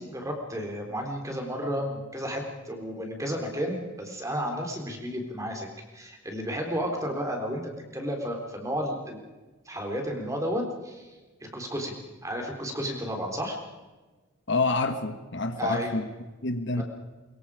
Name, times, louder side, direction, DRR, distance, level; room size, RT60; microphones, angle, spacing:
voice 1, 0.0-5.7 5.9-9.2 9.7-11.1 11.4-11.9 12.2-13.6 15.6-16.0 16.8-16.9, equal, 15° right, 2 dB, 3.7 m, -32 dB
voice 2, 14.5-16.1 16.4-16.8, left 3 dB, 55° left, 8 dB, 1.4 m, -27 dB
24.0 x 22.5 x 5.0 m, 1.2 s
head